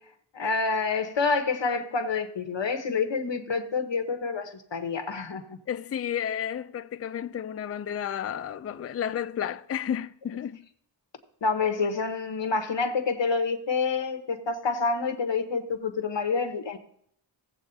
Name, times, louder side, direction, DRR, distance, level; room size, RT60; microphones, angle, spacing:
voice 1, 0.3-5.6 11.4-16.8, left 4 dB, 65° left, 1.2 m, -28 dB
voice 2, 5.7-10.6, left 9 dB, 35° left, 0.4 m, -32 dB
16.5 x 7.6 x 2.8 m
wide cardioid pair, 95°, 47 cm